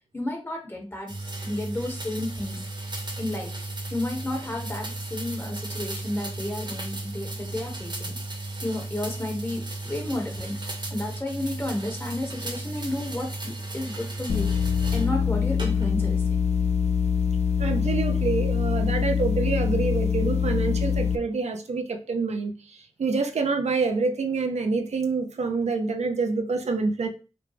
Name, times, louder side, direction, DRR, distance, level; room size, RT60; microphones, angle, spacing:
voice 1, 0.1-2.6 3.2-3.5 3.9-8.2 8.6-14.5 14.9-16.4, left 1 dB, 20° left, 1.4 m, -32 dB
sound 1, 1.1-15.1 15.6-16.1, right 2 dB, 45° right, 1.1 m, -35 dB
sound 2, 14.3-21.2, left 6 dB, 85° left, 0.4 m, -24 dB
voice 2, 17.6-27.1, right 4 dB, 85° right, 0.6 m, -27 dB
5.1 x 2.3 x 3.3 m
wide cardioid pair, 75°, 11 cm